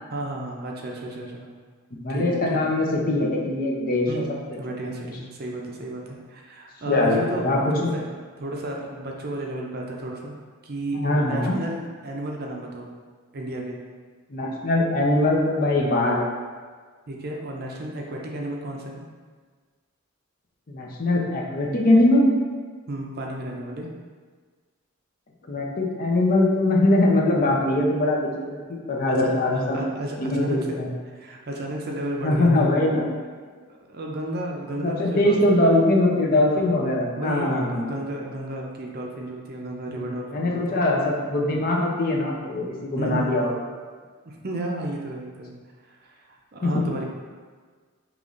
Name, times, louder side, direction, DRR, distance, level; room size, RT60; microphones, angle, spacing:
voice 1, 0.1-1.5 2.1-2.6 4.1-10.4 10.6-12.9 13.3-13.8 17.1-19.0 22.9-23.9 29.1-30.8 31.1-32.7 33.9-35.7 36.5-40.8 43.0-43.5 44.2-45.5 45.8-47.0, right 1 dB, 45° right, 0 dB, 0.5 m, -33 dB
voice 2, 1.9-4.2 4.9-5.1 6.9-7.9 10.9-11.6 14.3-16.3 20.7-22.3 25.5-29.8 30.2-30.9 32.2-33.1 34.8-37.9 39.9-43.5 46.6-46.8, left 1 dB, 40° left, -2 dB, 0.6 m, -22 dB
5.2 x 3.0 x 2.5 m, 1.5 s
head